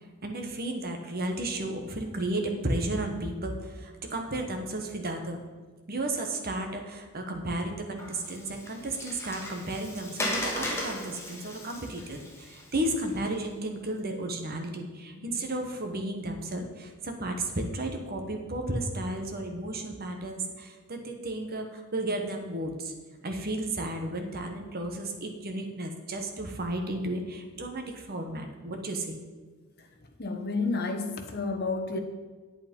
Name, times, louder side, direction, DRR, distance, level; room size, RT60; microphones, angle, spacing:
voice 1, 0.2-5.4 5.9-22.9 23.2-29.2, right 1 dB, 45° right, 4 dB, 1.3 m, -33 dB
Water, 8.0-13.4, left 1 dB, 10° left, 1.5 m, -37 dB
voice 2, 30.2-32.0, left 3 dB, 45° left, 4 dB, 1.2 m, -31 dB
8.9 x 8.4 x 5.4 m, 1.4 s
head